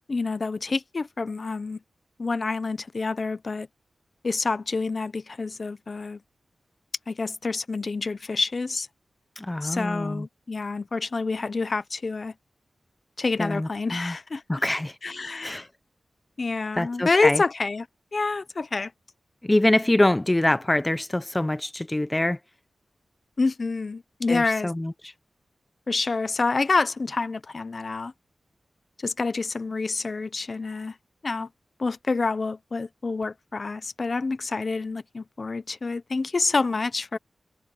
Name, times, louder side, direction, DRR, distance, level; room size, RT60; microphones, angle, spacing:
voice 1, 0.1-1.8 2.2-3.7 4.2-6.2 7.1-8.9 9.6-12.3 13.2-14.6 15.0-15.6 16.4-17.9 18.1-18.9 23.4-24.7 25.9-28.1 29.0-30.9 31.2-31.5 31.8-37.2, left 3 dB, 50° left, 0.8 m, -27 dB
voice 2, 9.4-10.3 13.4-14.1 14.5-15.0 15.4-15.7 16.8-17.4 19.4-22.4 24.3-24.9, left 1 dB, 15° left, 0.7 m, -24 dB
wide cardioid pair, 80°, 0 cm